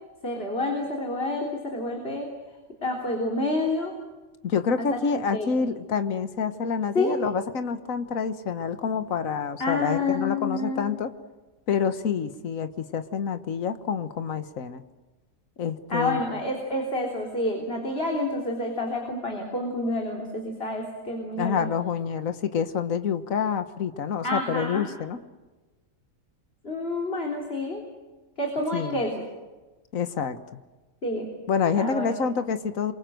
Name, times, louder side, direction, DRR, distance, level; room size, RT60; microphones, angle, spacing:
voice 1, 0.2-2.3 2.8-4.0 4.8-4.9 5.3-5.7 6.9-7.2 9.6-10.8 15.9-21.7 24.2-24.9 26.6-27.8 28.4-29.2 31.0-31.3 31.7-32.1, left 2 dB, 45° left, 1 dB, 3.8 m, -28 dB
voice 2, 4.4-11.1 11.7-14.8 15.6-16.2 21.4-25.2 28.7-29.0 29.9-30.6 31.5-32.9, left 6 dB, 70° left, 10 dB, 1.7 m, -27 dB
28.0 x 23.5 x 7.8 m, 1.2 s
omnidirectional pair, 1.5 m